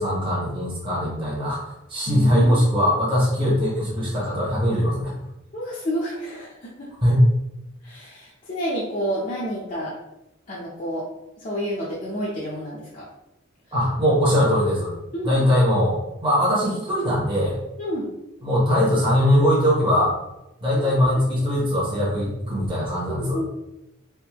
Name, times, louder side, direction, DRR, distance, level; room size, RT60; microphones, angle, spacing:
voice 1, 0.0-5.1 7.0-7.3 13.7-14.9 15.2-15.9 16.2-17.6 18.4-20.1 20.6-23.4, equal, 25° right, -6 dB, 1.0 m, -21 dB
voice 2, 2.1-2.9 5.5-6.9 7.8-9.9 10.5-11.0 11.4-13.1 15.1-15.4 17.8-18.1 20.8-20.9 21.4-21.6 23.1-23.5, equal, 40° left, -7 dB, 0.6 m, -30 dB
3.5 x 2.6 x 2.9 m, 0.91 s
head